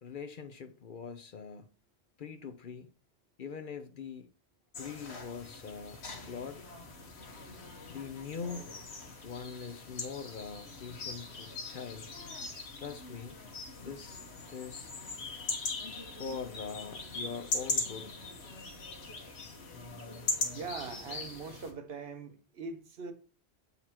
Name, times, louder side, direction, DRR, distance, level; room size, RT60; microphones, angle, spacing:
voice 1, 0.0-1.7 2.2-2.9 3.4-4.3 4.8-6.6 7.9-8.7 9.2-12.1 12.8-13.4 13.8-14.2 14.5-14.9 16.1-18.1, left 6 dB, 55° left, 0.7 m, -42 dB
sound 1, 4.7-21.7, left 3 dB, 75° left, 1.5 m, -40 dB
voice 2, 20.5-23.1, right 4 dB, 65° right, 1.1 m, -42 dB
7.6 x 4.1 x 4.3 m
omnidirectional pair, 1.1 m